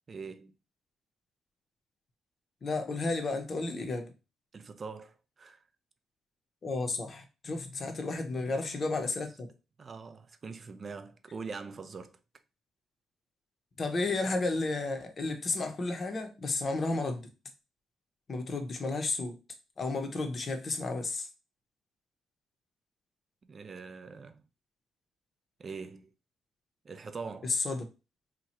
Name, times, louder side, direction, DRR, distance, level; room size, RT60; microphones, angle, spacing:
voice 1, 0.1-0.6 4.5-5.6 8.5-8.6 9.8-12.2 23.4-24.4 25.6-26.1 26.8-27.5, right 4 dB, 40° right, 0.4 m, -43 dB
voice 2, 2.6-4.1 6.6-9.5 13.8-17.2 18.3-19.4 19.8-21.3 27.4-27.8, left 3 dB, 40° left, 0.7 m, -32 dB
2.9 x 2.2 x 4.2 m
cardioid pair, 90°, 0 cm